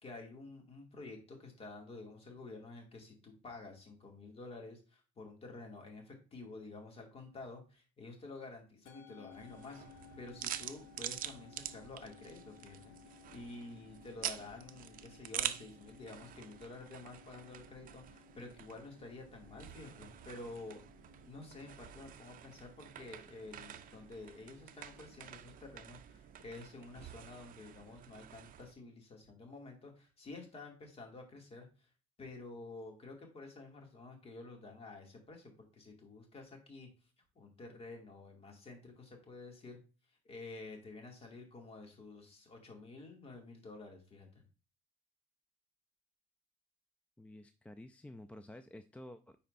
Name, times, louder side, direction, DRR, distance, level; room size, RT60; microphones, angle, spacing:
voice 1, 0.0-20.8 21.2-31.9 32.2-36.9 37.4-39.8 40.2-44.4, left 3 dB, 35° left, 2 dB, 2.2 m, -50 dB
Musical instrument, 8.9-27.4, left 10 dB, 85° left, 1.1 m, -61 dB
sound 1, 9.3-28.7, right 11 dB, 55° right, 0.6 m, -47 dB
voice 2, 47.2-49.4, left 1 dB, 10° left, 9 dB, 0.3 m, -51 dB
9.3 x 4.2 x 2.5 m, 0.34 s
cardioid pair, 110°, 17 cm